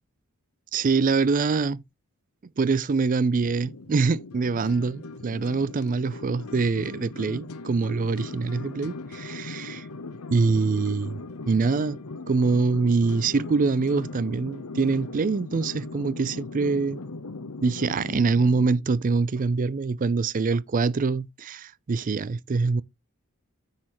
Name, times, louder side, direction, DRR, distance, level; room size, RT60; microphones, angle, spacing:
voice 1, 0.7-1.8 2.6-9.9 10.3-11.2 11.5-12.0 12.3-17.0 17.6-22.8, right 4 dB, 40° right, 0.4 m, -24 dB
sound 1, 3.3-18.7, left 3 dB, 90° left, 0.9 m, -39 dB
9.9 x 6.5 x 3.0 m
head